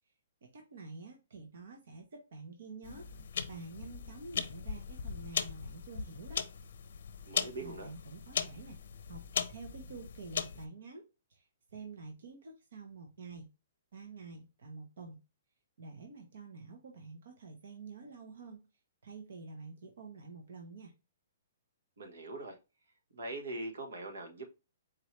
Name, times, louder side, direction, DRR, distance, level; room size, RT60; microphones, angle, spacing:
voice 1, 0.4-6.5 7.6-8.8 9.1-11.0 11.3-13.5 13.9-15.2 15.8-18.6 19.0-20.9, right 4 dB, 60° right, 1.0 m, -48 dB
sound 1, 2.8-10.6, left 7 dB, 65° left, 0.6 m, -39 dB
voice 2, 7.3-7.9 22.0-22.6 23.1-24.4, right 2 dB, 80° right, 1.3 m, -42 dB
4.5 x 3.1 x 3.1 m
hypercardioid pair, 170°, 0 cm